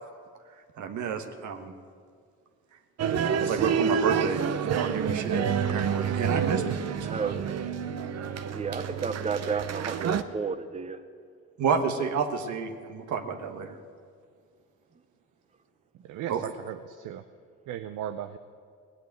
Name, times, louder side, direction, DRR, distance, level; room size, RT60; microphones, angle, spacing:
voice 1, 0.8-1.7 3.4-6.7 7.1-7.3 11.6-13.7 16.3-16.5, right 6 dB, 75° right, 7 dB, 1.4 m, -30 dB
sound 1, 3.0-10.2, right 7 dB, 55° right, 0.8 m, -28 dB
voice 2, 7.1-7.4 8.4-11.0, right 5 dB, 20° right, 11 dB, 0.8 m, -32 dB
voice 3, 16.1-17.2 17.7-18.4, right 10 dB, 90° right, 10 dB, 0.6 m, -36 dB
17.5 x 8.1 x 9.2 m, 2.1 s
cardioid pair, 90°, 30 cm